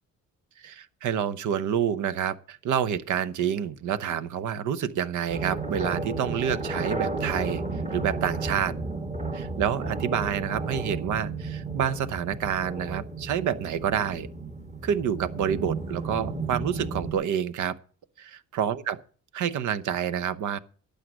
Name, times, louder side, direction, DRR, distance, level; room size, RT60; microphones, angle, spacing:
voice 1, 0.6-7.6 7.9-8.7 9.3-14.3 14.8-17.7 18.2-19.0 19.3-20.6, right 9 dB, 75° right, 0.9 m, -28 dB
sound 1, 5.3-17.1, right 3 dB, 25° right, 1.9 m, -33 dB
12.5 x 8.2 x 6.2 m
cardioid pair, 90°, 30 cm